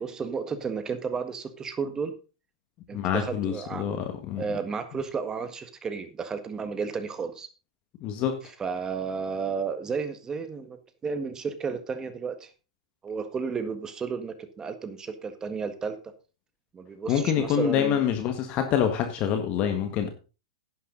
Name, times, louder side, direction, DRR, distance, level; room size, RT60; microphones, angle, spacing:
voice 1, 0.0-2.1 2.9-3.8 4.4-7.5 8.6-10.8 11.0-12.5 13.0-16.0 16.7-18.0, right 5 dB, 20° right, 10 dB, 1.7 m, -32 dB
voice 2, 2.9-4.5 8.0-8.4 17.1-20.1, left 9 dB, 35° left, 6 dB, 1.8 m, -26 dB
11.0 x 10.0 x 4.0 m, 0.34 s
hypercardioid pair, 120°, 4 cm